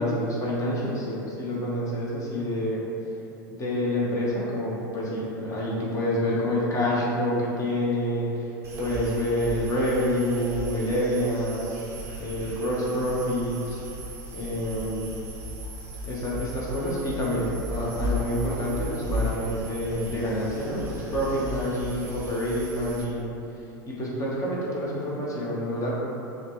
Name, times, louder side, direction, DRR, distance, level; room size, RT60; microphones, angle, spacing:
voice 1, 0.0-2.8 3.5-8.5 8.8-11.7 12.2-13.8 14.3-15.1 16.0-23.3 23.9-26.0, equal, 30° left, -5 dB, 1.1 m, -27 dB
sound 1, 8.6-23.0, equal, 25° right, 0.8 m, -35 dB
5.6 x 2.3 x 3.1 m, 2.9 s
figure-of-eight pair, 85°, 11 cm